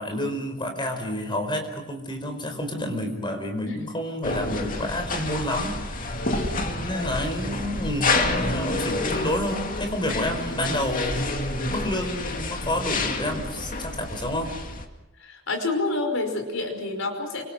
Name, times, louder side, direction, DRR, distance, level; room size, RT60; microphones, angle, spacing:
voice 1, 0.0-6.2 6.8-11.3 11.7-14.5, left 1 dB, 20° left, 5 dB, 5.0 m, -29 dB
sound 1, 4.2-14.8, left 2 dB, 40° left, 2.3 m, -29 dB
voice 2, 6.2-6.5 15.2-17.4, left 2 dB, 70° left, 5 dB, 5.5 m, -28 dB
29.0 x 25.5 x 6.4 m, 1.0 s
head